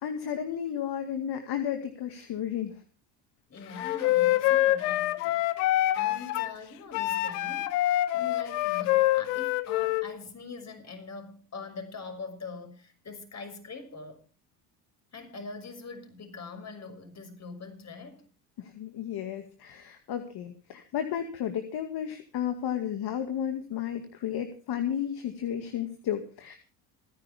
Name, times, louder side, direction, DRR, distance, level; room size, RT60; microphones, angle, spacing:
voice 1, 0.0-2.8 3.8-4.0 18.6-26.6, left 9 dB, 50° left, 2.2 m, -33 dB
voice 2, 3.5-5.4 5.9-14.2 15.1-18.3, left 4 dB, 35° left, 6.3 m, -43 dB
Wind instrument woodwind instrument, 3.8-6.5 6.9-10.1, left 15 dB, 75° left, 1.3 m, -26 dB
27.5 x 10.5 x 3.5 m
hypercardioid pair, 80°, 47 cm